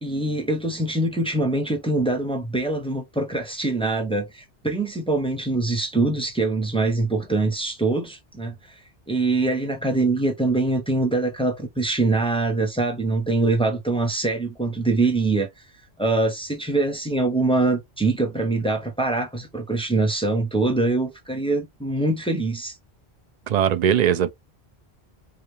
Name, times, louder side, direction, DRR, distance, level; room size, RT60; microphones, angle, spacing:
voice 1, 0.0-8.5 9.1-15.5 16.0-22.7, right 2 dB, 5° left, 0.7 m, -23 dB
voice 2, 23.5-24.3, right 9 dB, 55° right, 0.5 m, -20 dB
4.9 x 2.4 x 3.2 m
omnidirectional pair, 1.1 m